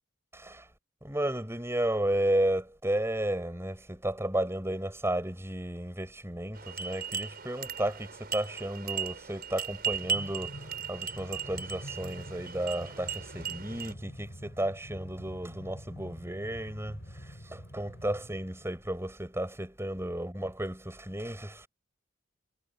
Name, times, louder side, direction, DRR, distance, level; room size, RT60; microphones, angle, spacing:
voice 1, 0.3-0.7 1.0-21.7, right 1 dB, 15° right, 5.7 m, -33 dB
sound 1, 6.5-13.9, right 6 dB, 50° right, 6.1 m, -37 dB
Train, 10.0-18.9, equal, 60° left, 6.8 m, -47 dB
head